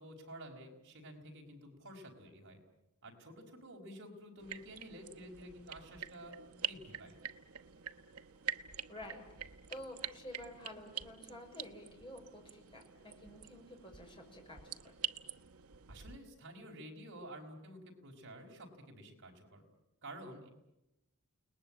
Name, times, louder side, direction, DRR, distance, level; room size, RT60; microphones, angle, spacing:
voice 1, 0.0-2.6 3.0-7.1 15.9-19.6 20.0-20.5, right 1 dB, 55° right, 1 dB, 4.9 m, -51 dB
sound 1, 4.4-16.2, right 9 dB, 75° right, 1.0 m, -46 dB
voice 2, 8.9-14.9, left 1 dB, 25° left, 1 dB, 5.8 m, -51 dB
30.0 x 20.0 x 8.8 m, 0.92 s
head